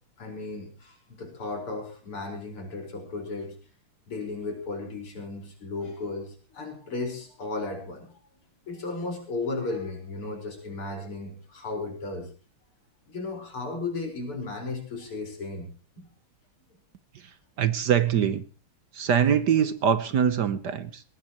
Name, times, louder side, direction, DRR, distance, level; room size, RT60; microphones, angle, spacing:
voice 1, 0.2-3.6 4.1-8.1 8.7-12.3 13.1-15.7, left 3 dB, 85° left, 3 dB, 5.8 m, -35 dB
voice 2, 17.1-18.4 18.9-21.0, right 8 dB, 60° right, 14 dB, 1.4 m, -24 dB
20.5 x 18.0 x 3.0 m, 0.36 s
omnidirectional pair, 2.4 m